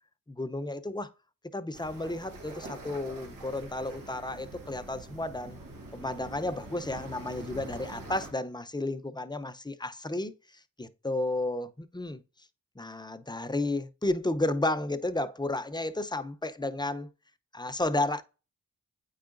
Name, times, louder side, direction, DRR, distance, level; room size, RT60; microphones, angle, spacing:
voice 1, 0.3-1.1 1.5-5.6 5.9-10.3 10.8-12.2 12.8-17.1 17.5-18.2, left 2 dB, 15° left, 0.7 m, -32 dB
sound 1, 1.7-8.3, right 2 dB, 85° right, 1.5 m, -45 dB
8.5 x 4.8 x 2.6 m
cardioid pair, 40°, 33 cm